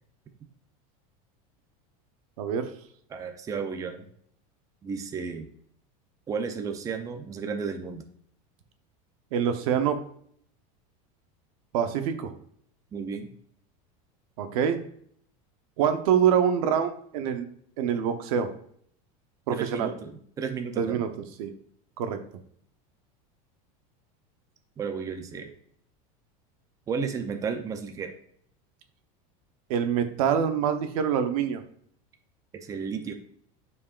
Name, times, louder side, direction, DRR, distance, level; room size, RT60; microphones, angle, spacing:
voice 1, 2.4-2.7 9.3-10.0 11.7-12.3 14.4-14.8 15.8-17.5 17.8-18.5 19.5-19.9 20.8-21.1 21.4-21.5 22.0-22.2 29.7-31.6, right 8 dB, 75° right, 8 dB, 0.9 m, -25 dB
voice 2, 3.1-4.1 4.8-5.5 6.3-8.0 12.9-13.3 19.5-21.0 24.8-25.5 26.9-28.1 32.6-33.2, right 5 dB, 20° right, 6 dB, 0.6 m, -33 dB
8.5 x 4.7 x 2.4 m, 0.63 s
supercardioid pair, 150°, 19 cm